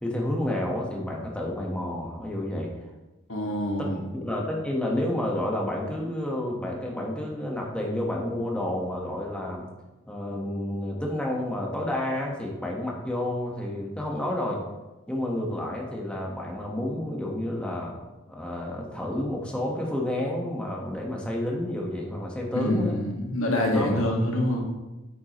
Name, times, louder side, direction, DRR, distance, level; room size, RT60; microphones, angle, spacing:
voice 1, 0.0-2.7 3.8-9.7 10.1-14.6 15.1-18.0 18.3-23.0 23.7-24.0, left 1 dB, 5° left, -2 dB, 1.5 m, -30 dB
voice 2, 3.3-4.0 22.5-24.6, left 1 dB, 85° left, 0 dB, 1.9 m, -26 dB
9.3 x 9.2 x 3.2 m, 1.1 s
head